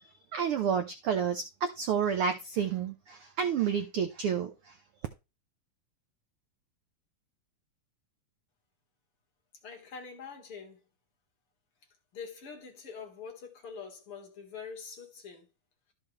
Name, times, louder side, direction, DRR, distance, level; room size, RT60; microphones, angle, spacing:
voice 1, 0.3-4.7, right 7 dB, 80° right, 1.2 m, -30 dB
voice 2, 9.6-10.8 12.1-15.5, left 6 dB, 50° left, 2.4 m, -44 dB
13.0 x 6.2 x 3.2 m
omnidirectional pair, 3.5 m